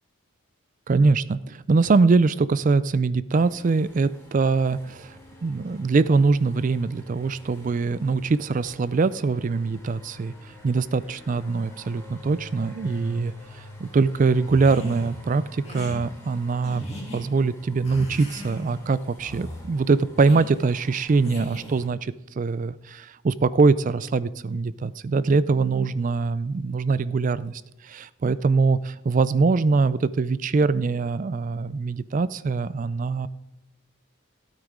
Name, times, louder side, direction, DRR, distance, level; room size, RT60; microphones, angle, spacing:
voice 1, 0.9-16.8 17.1-33.3, right 4 dB, 35° right, 17 dB, 0.3 m, -23 dB
sound 1, 3.3-21.9, left 1 dB, 10° left, 2.4 m, -47 dB
sound 2, 14.5-15.1 15.6-16.0 16.6-17.2 17.8-18.8 19.2-19.6 20.2-20.5 21.2-21.8, equal, 30° left, 2.7 m, -37 dB
15.5 x 8.9 x 3.7 m, 0.99 s
head